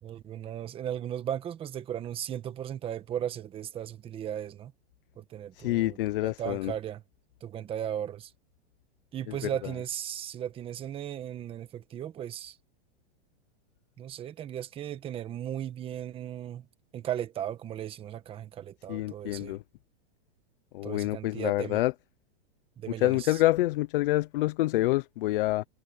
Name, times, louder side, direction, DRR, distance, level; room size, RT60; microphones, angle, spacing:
voice 1, 0.0-4.7 5.2-6.0 6.2-7.0 7.4-8.3 9.1-12.6 14.0-16.6 16.9-19.6 20.8-21.8 22.8-23.4, right 10 dB, 15° right, 1.2 m, -36 dB
voice 2, 5.6-6.7 9.3-9.4 18.9-19.6 20.7-21.9 23.0-25.7, left 17 dB, 55° left, 0.8 m, -27 dB
supercardioid pair, 160°, 32 cm